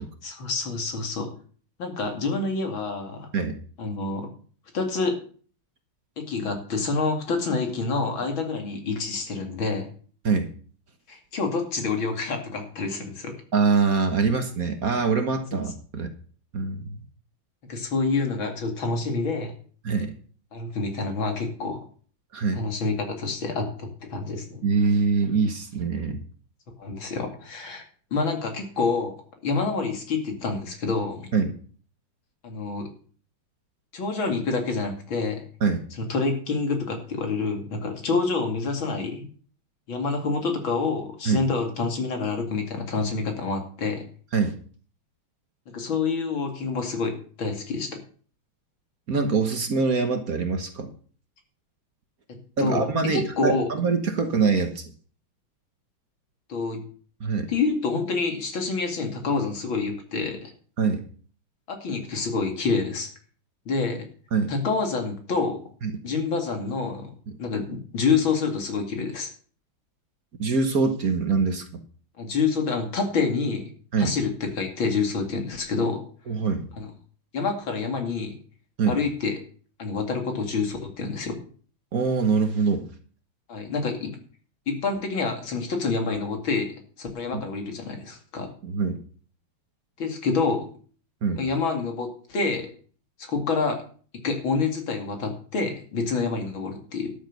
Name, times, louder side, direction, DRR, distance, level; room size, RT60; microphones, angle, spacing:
voice 1, 0.2-1.3 1.8-3.3 3.8-4.3 4.7-5.2 6.2-9.9 11.1-13.3 17.7-19.5 20.5-21.8 22.5-24.6 26.8-27.8 28.1-29.1 29.4-31.3 32.4-32.9 33.9-35.5 36.0-39.3 39.9-44.0 45.7-48.0 52.3-53.7 56.5-56.8 57.5-60.5 61.7-63.1 63.7-64.0 64.5-65.6 66.0-67.1 67.4-69.3 72.2-73.7 74.0-76.0 76.8-76.9 77.3-78.3 78.9-79.3 79.8-81.4 83.5-84.1 84.7-88.5 90.0-90.7 91.4-92.7 93.2-93.8 94.2-97.1, left 4 dB, 70° left, 4 dB, 3.2 m, -27 dB
voice 2, 13.5-16.1 16.5-17.0 19.8-20.1 22.3-22.6 24.6-26.2 31.3-31.5 35.6-35.8 41.2-41.4 44.3-44.6 49.1-50.9 52.6-54.8 57.2-57.5 60.8-61.0 64.3-64.5 65.8-66.0 67.3-67.4 70.4-71.8 73.9-74.2 76.3-76.7 78.8-78.9 81.9-82.8 87.3-87.4 88.6-89.0 91.2-91.4, right 4 dB, 50° right, 7 dB, 1.6 m, -24 dB
12.5 x 7.4 x 6.7 m, 0.43 s
omnidirectional pair, 2.3 m